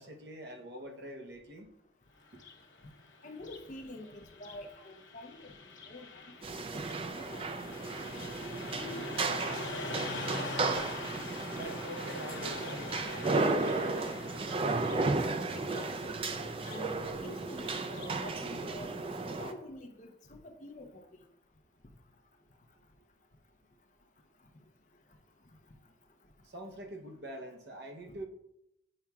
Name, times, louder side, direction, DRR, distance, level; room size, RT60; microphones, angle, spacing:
voice 1, 0.0-1.7 2.3-2.4 11.5-14.1 26.4-28.3, right 1 dB, 60° right, 3 dB, 0.8 m, -45 dB
Car passing by, 2.2-18.2, left 3 dB, 90° left, 0.8 m, -45 dB
voice 2, 3.2-5.5 5.9-6.2 6.5-6.6 7.0-7.5 7.8-8.0 8.8-9.7 10.7-10.8 15.5-16.3 16.6-16.9 17.2-18.9 19.4-21.1 28.1-28.2, left 1 dB, 40° left, 4 dB, 0.7 m, -47 dB
sound 1, 6.4-19.5, right 3 dB, 30° right, 0.4 m, -34 dB
8.6 x 5.5 x 2.3 m, 0.84 s
head